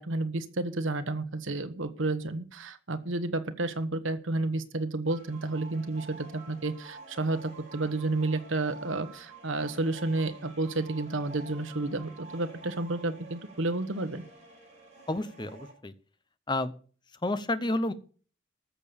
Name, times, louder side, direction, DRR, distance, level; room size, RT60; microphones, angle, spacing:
voice 1, 0.0-14.2, right 2 dB, 75° right, 10 dB, 1.2 m, -31 dB
sound 1, 5.0-15.7, right 3 dB, 35° right, 6.4 m, -49 dB
voice 2, 15.1-15.9 16.5-16.7 17.2-17.9, left 2 dB, 20° left, 12 dB, 0.7 m, -30 dB
14.0 x 6.8 x 6.9 m, 0.43 s
head